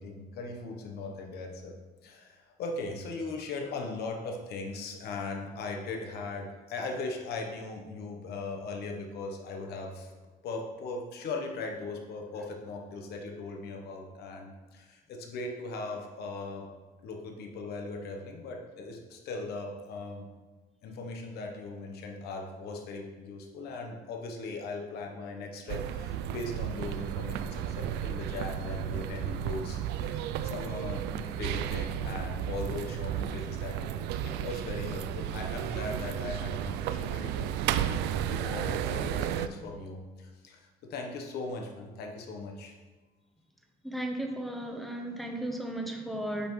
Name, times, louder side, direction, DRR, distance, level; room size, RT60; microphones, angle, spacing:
voice 1, 0.0-1.8 2.0-10.1 10.4-16.7 17.0-20.3 20.8-38.0 38.3-42.7, left 3 dB, 70° left, 2 dB, 1.1 m, -39 dB
sound 1, 25.7-39.5, right 10 dB, 85° right, 0.4 m, -33 dB
voice 2, 43.8-46.5, right 1 dB, ahead, 2 dB, 0.9 m, -35 dB
8.3 x 5.4 x 3.2 m, 1.3 s
cardioid pair, 110°, 17 cm